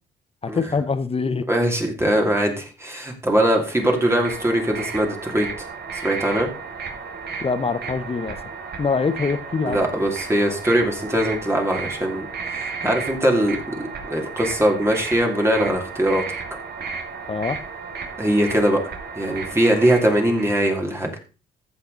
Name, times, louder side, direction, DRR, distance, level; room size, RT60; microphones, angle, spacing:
voice 1, 0.4-1.5 7.4-8.4 8.8-9.8 17.3-17.6, left 4 dB, 30° left, 0.9 m, -24 dB
voice 2, 1.5-5.5 5.9-6.5 9.7-16.2 18.2-18.8 19.1-21.1, right 1 dB, 15° right, 2.6 m, -21 dB
sound 1, 3.6-20.7, right 5 dB, 55° right, 2.9 m, -34 dB
14.5 x 5.7 x 3.9 m
cardioid pair, 90°, 20 cm